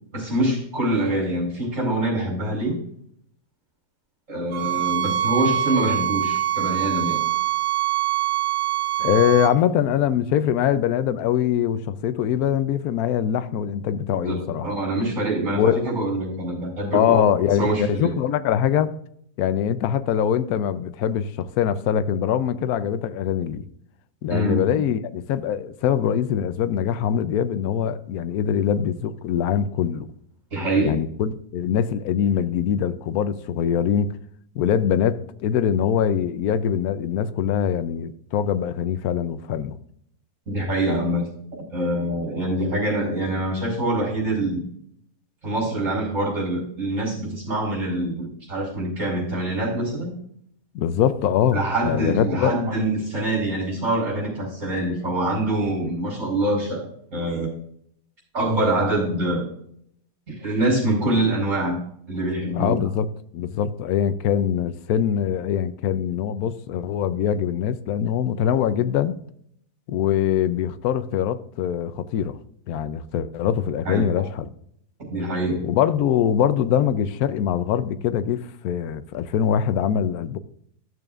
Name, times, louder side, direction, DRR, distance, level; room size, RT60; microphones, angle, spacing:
voice 1, 0.1-2.8 4.3-7.2 14.1-14.4 14.6-17.2 17.6-18.1 24.3-24.7 30.5-30.9 40.5-41.2 41.7-44.6 45.4-50.1 51.5-56.8 57.1-57.5 58.3-59.5 60.3-61.8 62.1-62.8 73.8-74.0 75.1-75.7, right 1 dB, 45° right, 4.8 m, -25 dB
sound 1, 4.5-9.5, right 12 dB, 80° right, 1.4 m, -24 dB
voice 2, 9.0-14.7 15.5-15.9 16.9-18.9 19.4-23.6 24.2-30.1 30.8-34.1 34.5-39.8 50.7-52.5 62.5-63.1 63.3-69.2 69.9-72.4 72.7-74.5 75.6-80.4, left 9 dB, 70° left, 1.0 m, -23 dB
14.5 x 6.8 x 2.4 m
omnidirectional pair, 1.8 m